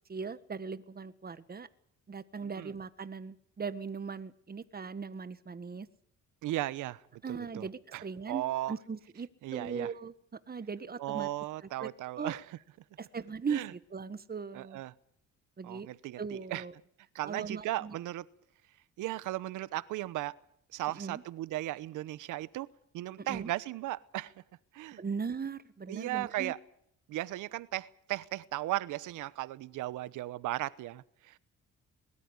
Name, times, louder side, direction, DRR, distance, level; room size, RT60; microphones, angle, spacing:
voice 1, 0.1-1.7 2.1-5.9 7.2-10.1 10.5-11.3 11.8-11.9 12.2-12.3 13.0-14.8 15.6-15.9 16.2-16.7 17.2-18.0 20.9-21.2 23.2-23.5 25.0-26.5, right 5 dB, 30° right, 1.6 m, -39 dB
voice 2, 6.4-8.7 9.4-9.9 11.0-12.4 13.5-13.7 14.5-14.9 15.6-16.6 17.1-18.3 19.0-20.4 20.7-22.7 22.9-24.3 24.7-25.0 25.9-26.6 27.1-31.4, right 16 dB, 90° right, 1.0 m, -36 dB
22.0 x 13.5 x 9.8 m
cardioid pair, 90°, 30 cm